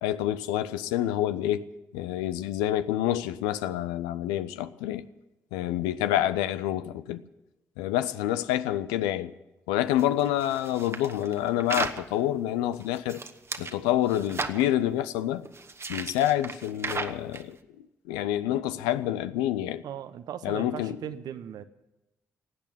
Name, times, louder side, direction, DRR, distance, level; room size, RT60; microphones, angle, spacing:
voice 1, 0.0-1.6 1.9-5.1 5.5-7.2 7.8-9.3 9.7-13.2 13.6-15.4 15.9-17.6 18.1-19.8 20.4-21.0, left 12 dB, 85° left, 0.5 m, -27 dB
sound 1, 10.0-12.0 12.7-13.7 14.1-14.7 15.4-17.4, right 4 dB, 40° right, 1.2 m, -35 dB
voice 2, 19.8-21.6, right 10 dB, 70° right, 0.9 m, -38 dB
16.5 x 8.6 x 9.0 m
hypercardioid pair, 40°, 7 cm